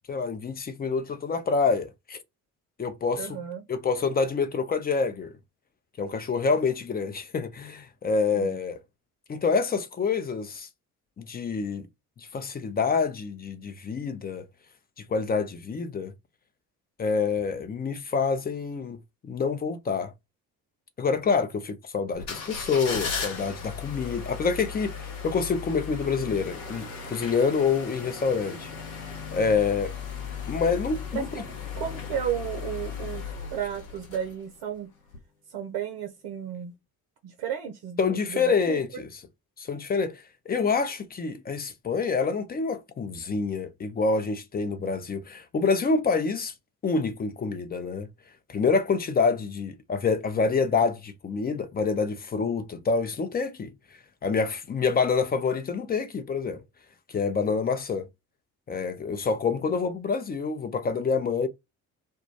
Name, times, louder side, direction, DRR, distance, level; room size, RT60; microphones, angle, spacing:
voice 1, 0.1-2.2 2.8-3.4 3.7-5.4 6.0-8.8 9.3-10.7 11.2-11.9 12.2-14.4 15.1-16.1 17.0-19.0 19.2-20.1 21.0-28.7 29.3-30.0 30.5-31.4 38.0-39.2 39.6-46.5 46.8-48.1 48.5-53.7 54.2-56.6 57.1-58.1 58.7-61.5, left 5 dB, 20° left, 0.4 m, -27 dB
voice 2, 3.1-3.6 8.3-8.6 31.1-33.2 33.5-34.9 35.5-36.7 37.2-38.8, right 9 dB, 65° right, 0.6 m, -33 dB
sound 1, 22.1-34.6 35.1-35.2, left 6 dB, 80° left, 0.8 m, -36 dB
2.1 x 2.1 x 2.7 m
hypercardioid pair, 50°, 45 cm